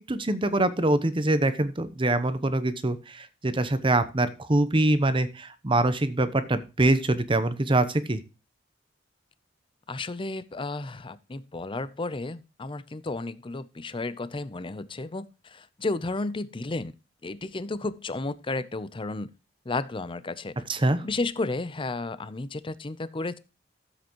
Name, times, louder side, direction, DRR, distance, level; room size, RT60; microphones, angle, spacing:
voice 1, 0.0-8.2 20.7-21.0, right 2 dB, 30° right, 12 dB, 0.9 m, -24 dB
voice 2, 9.9-16.9 17.2-19.3 19.7-20.5 21.0-23.4, left 3 dB, 30° left, 15 dB, 0.6 m, -33 dB
14.0 x 7.7 x 3.0 m, 0.31 s
head